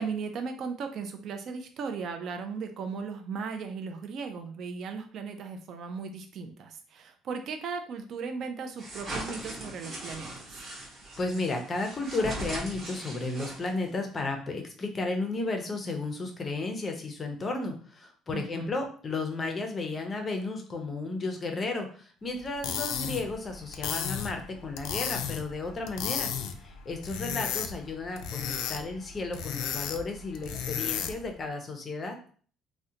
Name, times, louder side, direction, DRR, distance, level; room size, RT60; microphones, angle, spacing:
voice 1, 0.0-10.6 18.3-18.7 27.1-27.4, right 5 dB, 45° right, 6 dB, 0.3 m, -37 dB
sound 1, 8.8-13.9, right 1 dB, 25° right, 0.8 m, -39 dB
voice 2, 11.2-26.3 26.6-32.2, left 3 dB, 20° left, 4 dB, 0.5 m, -33 dB
sound 2, 22.4-31.3, left 8 dB, 80° left, 0.3 m, -34 dB
3.6 x 2.1 x 2.7 m, 0.43 s
cardioid pair, 180°, 0 cm